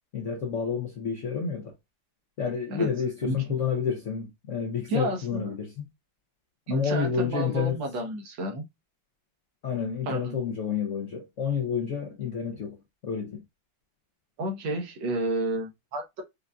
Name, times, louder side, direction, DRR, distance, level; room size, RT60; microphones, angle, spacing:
voice 1, 0.1-1.7 2.4-5.9 6.7-7.8 9.6-12.8 13.0-13.4, left 6 dB, 70° left, 0.7 m, -29 dB
voice 2, 4.9-5.5 6.7-8.6 10.1-10.4 14.4-16.2, right 1 dB, 75° right, 1.7 m, -31 dB
5.1 x 2.5 x 2.3 m
omnidirectional pair, 2.1 m